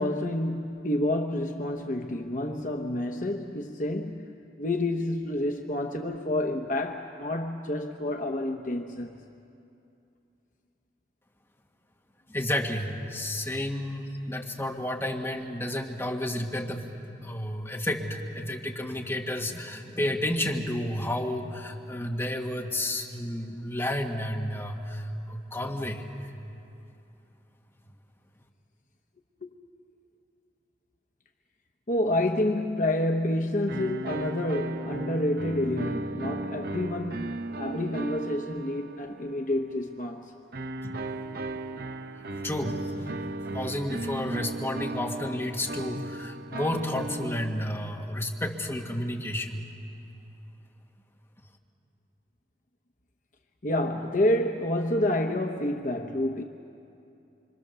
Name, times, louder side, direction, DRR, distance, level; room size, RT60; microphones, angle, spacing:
voice 1, 0.0-9.1 29.4-29.5 31.9-40.3 53.6-56.4, left 1 dB, 45° left, 0.9 m, -29 dB
voice 2, 12.3-16.9 17.2-26.3 40.8-41.0 42.2-49.7, left 1 dB, 15° left, 1.8 m, -31 dB
sound 1, 33.7-39.5 40.5-47.9, right 2 dB, 60° right, 0.8 m, -36 dB
26.0 x 25.5 x 6.9 m
head